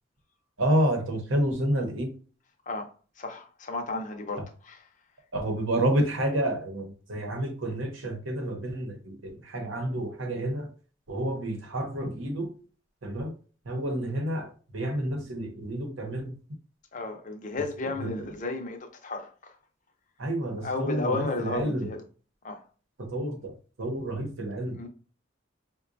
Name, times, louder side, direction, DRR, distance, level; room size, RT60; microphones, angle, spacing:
voice 1, 0.6-2.1 5.3-10.7 11.1-12.5 13.0-13.3 13.7-14.5 14.7-16.3 20.2-21.9 23.0-24.8, right 1 dB, 80° right, 0.9 m, -29 dB
voice 2, 2.7-4.9 16.9-19.6 20.6-22.0 22.4-22.6 24.7-24.9, left 3 dB, 40° left, 0.5 m, -33 dB
4.7 x 2.2 x 2.5 m
head